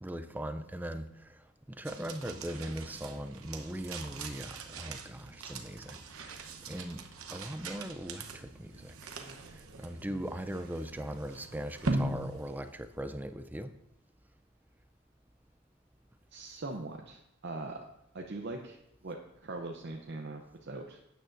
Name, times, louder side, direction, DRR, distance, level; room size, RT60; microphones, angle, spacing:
voice 1, 0.0-1.4 1.7-7.0 7.3-8.9 9.5-13.7, right 1 dB, 10° right, 0.4 m, -40 dB
sound 1, 1.8-13.2, right 2 dB, 70° right, 0.9 m, -40 dB
voice 2, 16.3-17.8 18.1-21.0, right 2 dB, 50° right, 0.6 m, -41 dB
12.0 x 9.1 x 2.6 m
head